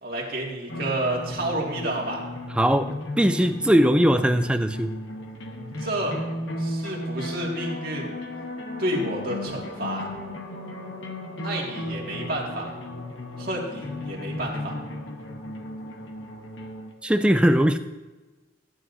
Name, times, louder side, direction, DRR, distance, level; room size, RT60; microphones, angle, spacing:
voice 1, 0.0-2.2 5.8-6.2 6.6-8.1 8.8-10.1 11.4-12.7 13.4-14.8, right 1 dB, 50° right, -2 dB, 2.0 m, -30 dB
sound 1, 0.7-16.9, left 1 dB, 70° left, 1.1 m, -35 dB
voice 2, 2.6-5.0 17.0-17.8, equal, 5° right, 9 dB, 0.3 m, -20 dB
15.0 x 9.3 x 2.7 m, 1.2 s
head